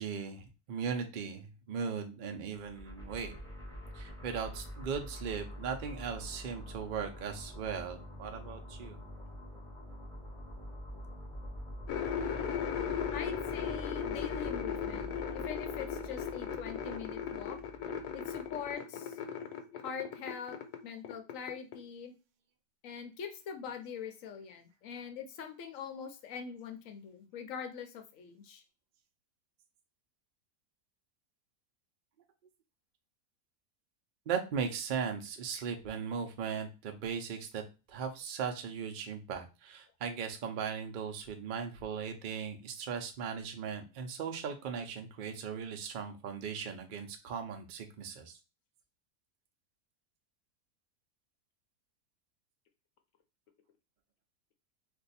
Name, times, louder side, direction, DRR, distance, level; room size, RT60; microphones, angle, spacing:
voice 1, 0.0-3.4 3.9-9.0 34.3-37.6 37.9-48.4, right 6 dB, 75° right, 5 dB, 0.4 m, -38 dB
sound 1, 2.5-18.7, equal, 5° left, 0.7 m, -46 dB
sound 2, 11.9-20.8 21.0-21.8, left 8 dB, 85° left, 1.2 m, -37 dB
voice 2, 13.1-17.6 18.1-19.2 19.8-20.6 20.8-22.1 22.8-28.6, left 7 dB, 65° left, 6 dB, 0.9 m, -43 dB
2.6 x 2.3 x 4.0 m, 0.30 s
omnidirectional pair, 1.7 m